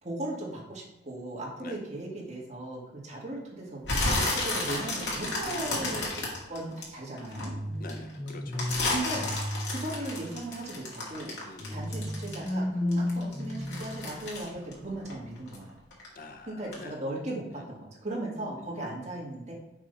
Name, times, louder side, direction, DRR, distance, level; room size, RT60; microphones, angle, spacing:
voice 1, 0.0-7.5 8.9-9.3 9.7-11.4 11.7-15.8 16.5-19.5, right 1 dB, 40° right, -3 dB, 1.9 m, -37 dB
sound 1, 3.8-7.4 7.9-12.6 12.9-15.6 15.9-16.3 16.7-16.8, left 2 dB, 80° left, 2.1 m, -31 dB
sound 2, 7.3-10.4 11.6-14.5, left 1 dB, 25° left, 1.3 m, -34 dB
voice 2, 7.8-8.7 11.4-11.8 16.2-17.0 18.6-18.9, left 3 dB, 55° left, 7 dB, 0.7 m, -46 dB
6.1 x 5.1 x 4.0 m, 0.93 s
head